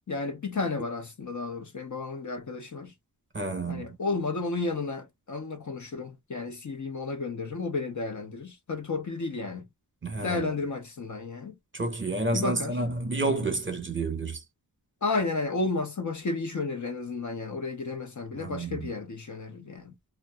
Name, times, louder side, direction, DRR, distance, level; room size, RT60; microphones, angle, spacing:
voice 1, 0.0-2.9 3.7-9.7 10.2-11.6 12.3-12.7 15.0-20.0, left 3 dB, 45° left, 0.7 m, -32 dB
voice 2, 3.3-4.0 10.0-10.5 11.7-14.4 18.3-18.9, right 2 dB, 30° right, 0.9 m, -30 dB
2.6 x 2.2 x 2.2 m
wide cardioid pair, 70°, 39 cm